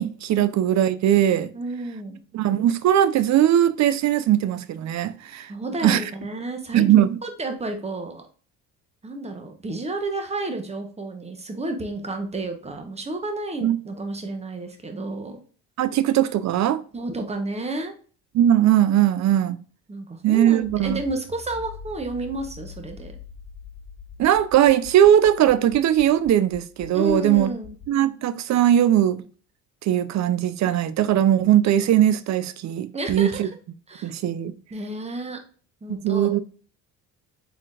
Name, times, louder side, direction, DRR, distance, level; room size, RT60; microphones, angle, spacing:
voice 1, 0.0-1.5 2.3-5.5 5.8-6.0 6.7-7.2 13.6-13.8 15.8-16.8 18.3-19.6 20.2-21.0 24.2-27.5 27.9-29.2 29.8-33.5 34.0-34.5 35.9-36.4, right 11 dB, 50° right, 0.5 m, -19 dB
voice 2, 1.5-2.2 5.5-6.8 7.2-8.2 9.0-15.4 16.9-17.9 19.9-23.2 26.9-27.7 32.9-33.4 33.9-34.1 34.7-35.4 35.8-36.3, right 2 dB, 20° right, 1.0 m, -31 dB
Accelerating revving vroom, 20.6-27.9, left 4 dB, 10° left, 1.9 m, -43 dB
4.0 x 3.8 x 2.4 m
supercardioid pair, 85°, 36 cm